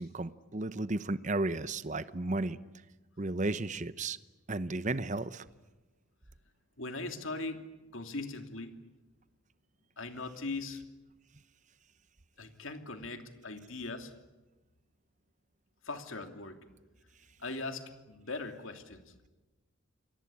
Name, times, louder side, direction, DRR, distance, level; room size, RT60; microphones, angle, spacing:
voice 1, 0.0-2.6 3.2-4.2 4.5-5.4, right 2 dB, 35° right, 14 dB, 0.8 m, -33 dB
voice 2, 6.8-7.7 7.9-8.8 10.0-10.8 12.4-14.1 15.8-16.6 17.4-19.1, left 3 dB, 65° left, 6 dB, 2.9 m, -40 dB
29.0 x 23.0 x 8.6 m, 1.1 s
head